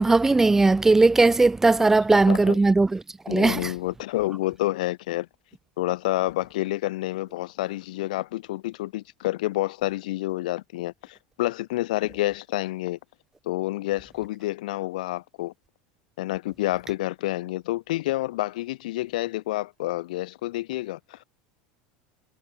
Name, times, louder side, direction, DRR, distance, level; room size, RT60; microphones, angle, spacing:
voice 1, 0.0-3.7, right 3 dB, 10° right, 0.8 m, -19 dB
voice 2, 2.3-2.6 3.3-5.3 5.8-13.0 13.4-15.5 16.2-21.2, left 17 dB, 90° left, 4.8 m, -29 dB
supercardioid pair, 145°, 4 cm